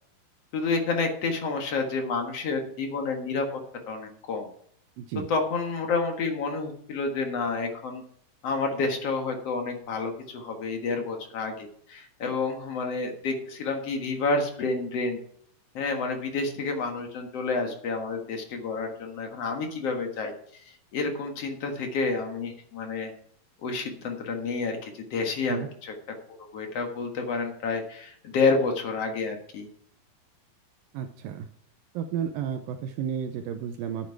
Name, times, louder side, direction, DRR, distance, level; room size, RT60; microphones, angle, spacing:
voice 1, 0.5-3.6 3.9-4.5 5.3-8.0 8.4-15.2 15.7-20.3 20.7-23.1 23.6-25.9 26.3-29.7, left 4 dB, 55° left, 3 dB, 2.2 m, -29 dB
voice 2, 5.0-5.3 25.5-25.7 30.9-31.5 31.9-34.1, right 8 dB, 80° right, 6 dB, 2.4 m, -32 dB
10.5 x 8.3 x 4.7 m, 0.66 s
omnidirectional pair, 4.1 m